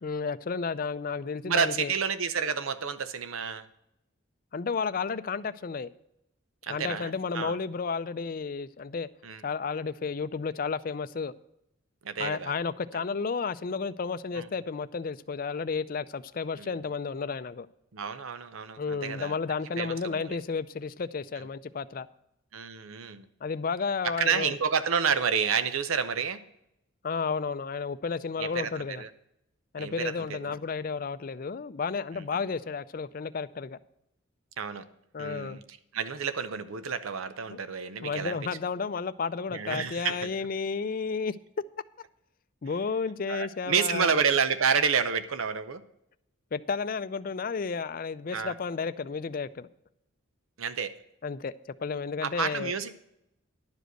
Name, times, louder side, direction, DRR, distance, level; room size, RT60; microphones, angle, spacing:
voice 1, 0.0-1.9 4.5-5.9 6.7-9.1 9.4-11.3 12.2-17.7 18.8-22.1 23.4-24.6 27.0-29.0 29.7-33.8 35.1-35.6 37.5-37.6 38.0-41.4 42.6-44.2 46.5-49.7 51.2-51.5 51.8-52.7, left 5 dB, 45° left, 0.4 m, -32 dB
voice 2, 1.5-3.7 6.6-7.6 9.2-9.4 12.0-12.5 14.3-14.5 16.6-16.7 17.9-19.4 19.8-20.4 22.5-23.3 24.0-26.4 28.4-29.1 29.8-30.5 34.6-34.8 35.2-38.4 39.5-40.1 43.3-45.8 48.3-48.5 50.6-50.9 52.2-52.9, right 6 dB, 85° right, 0.7 m, -29 dB
11.0 x 5.1 x 7.8 m
head